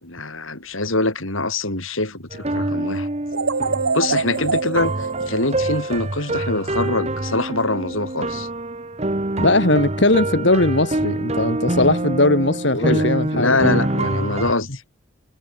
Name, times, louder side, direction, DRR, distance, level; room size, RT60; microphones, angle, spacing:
voice 1, 0.0-3.1 3.9-8.5 12.7-13.1 13.3-14.8, left 2 dB, 75° left, 7.8 m, -24 dB
sound 1, 2.3-14.5, right 2 dB, 30° right, 1.3 m, -25 dB
sound 2, 3.3-6.5, right 4 dB, 75° right, 1.3 m, -25 dB
voice 2, 9.4-13.6, left 2 dB, 55° left, 2.7 m, -19 dB
head